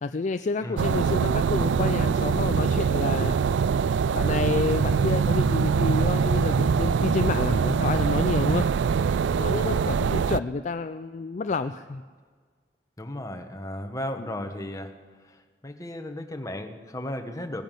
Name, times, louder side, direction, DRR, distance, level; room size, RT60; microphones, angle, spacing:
voice 1, 0.0-3.4 4.1-8.7 9.3-12.0 14.2-14.3, left 4 dB, 40° left, 9 dB, 0.4 m, -29 dB
sound 1, 0.8-10.4, right 6 dB, 75° right, 0.3 m, -23 dB
voice 2, 9.5-9.9 13.0-14.9 15.2-17.6, left 1 dB, 20° left, 6 dB, 1.2 m, -35 dB
17.5 x 10.5 x 7.5 m, 1.5 s
head